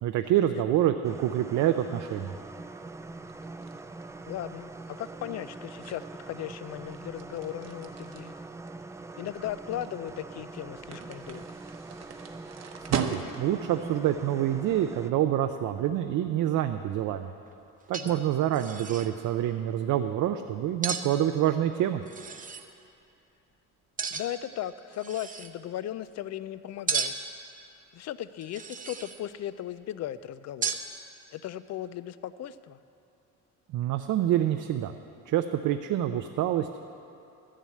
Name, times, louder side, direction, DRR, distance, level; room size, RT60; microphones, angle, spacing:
voice 1, 0.0-2.3 12.9-17.3 17.9-22.0 33.7-34.9 35.3-36.8, right 11 dB, 70° right, 7 dB, 0.6 m, -27 dB
sound 1, 1.0-15.1, right 3 dB, 10° right, 0.3 m, -43 dB
sound 2, 3.3-13.7, right 7 dB, 55° right, 1.0 m, -39 dB
voice 2, 4.3-8.3 9.2-11.4 18.0-18.2 24.1-27.1 27.9-30.8 31.3-32.8, left 12 dB, 55° left, 15 dB, 0.5 m, -37 dB
sound 3, 17.5-17.6 17.9-18.3 18.5-19.1 20.8-21.1 22.1-22.7 24.0-24.5 24.9-25.5 26.9-27.4 28.4-29.2 30.6-30.9, right 6 dB, 25° right, 0.7 m, -33 dB
12.0 x 7.5 x 8.3 m, 2.7 s
cardioid pair, 125°, 32 cm